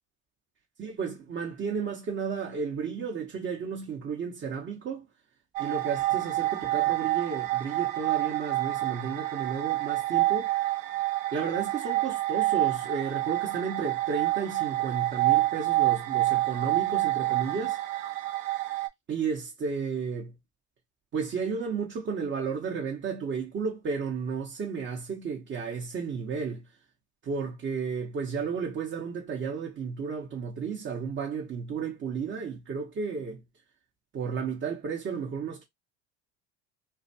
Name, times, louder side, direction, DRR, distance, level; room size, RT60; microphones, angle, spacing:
voice 1, 0.8-5.1 5.6-10.5 11.3-17.8 19.1-20.3 21.1-26.7 27.2-33.4 34.1-35.6, right 5 dB, 30° right, 0.9 m, -33 dB
sound 1, 5.6-18.9, right 17 dB, 70° right, 0.7 m, -28 dB
2.4 x 2.2 x 2.7 m
supercardioid pair, 90°, 37 cm